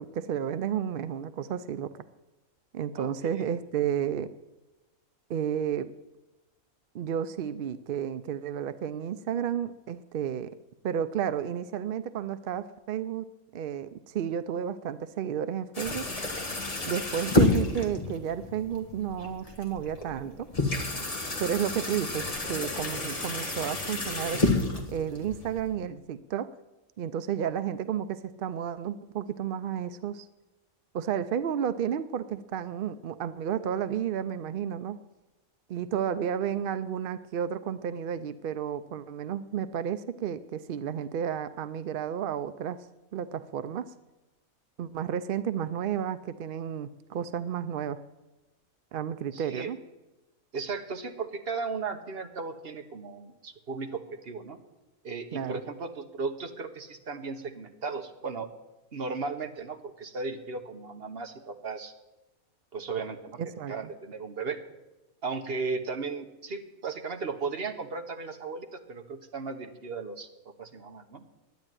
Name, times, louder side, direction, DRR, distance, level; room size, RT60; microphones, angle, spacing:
voice 1, 0.0-2.0 2.7-4.3 5.3-5.9 6.9-10.5 10.8-13.3 13.5-16.1 16.8-20.5 21.4-24.4 24.9-26.5 27.0-30.3 30.9-35.0 35.7-42.9 43.1-43.9 44.8-48.0 48.9-49.8 55.3-55.6 63.4-63.7, right 9 dB, 70° right, 13 dB, 0.5 m, -32 dB
voice 2, 3.0-3.6 49.3-49.7 50.5-54.6 55.0-58.5 58.9-61.9 62.7-63.4 63.7-64.6 65.2-70.3 70.6-71.2, right 4 dB, 45° right, 6 dB, 1.3 m, -36 dB
sound 1, 15.7-25.7, left 2 dB, 25° left, 1.6 m, -30 dB
10.5 x 9.7 x 9.1 m, 1.1 s
omnidirectional pair, 1.5 m